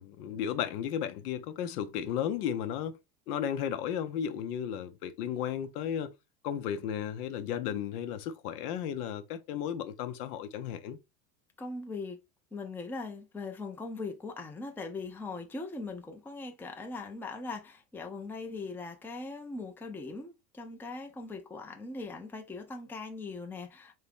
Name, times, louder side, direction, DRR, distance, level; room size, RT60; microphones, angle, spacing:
voice 1, 0.0-3.0 3.3-6.1 6.4-11.0, left 9 dB, 80° left, 0.8 m, -34 dB
voice 2, 11.6-12.2 12.5-23.9, left 3 dB, 5° left, 0.5 m, -40 dB
3.6 x 2.8 x 3.5 m
supercardioid pair, 100°, 45 cm